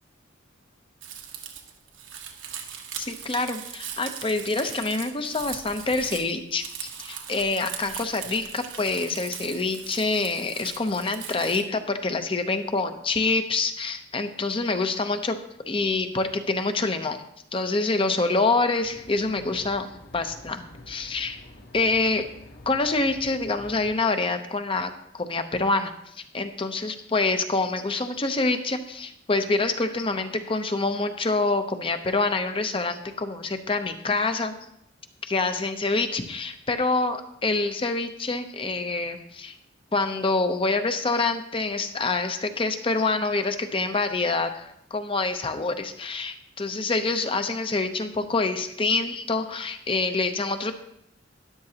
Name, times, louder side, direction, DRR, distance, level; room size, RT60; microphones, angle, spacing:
Crumpling crinkling, 1.0-11.6, right 8 dB, 80° right, 1.3 m, -39 dB
voice 1, 3.0-15.4 15.6-17.2 17.5-19.9 20.1-21.4 21.7-22.2 22.7-34.5 35.2-39.6 39.9-50.7, left 3 dB, 30° left, 8 dB, 0.7 m, -26 dB
sound 1, 18.8-23.9, left 1 dB, 55° left, 1.2 m, -48 dB
12.5 x 10.5 x 2.9 m, 0.75 s
head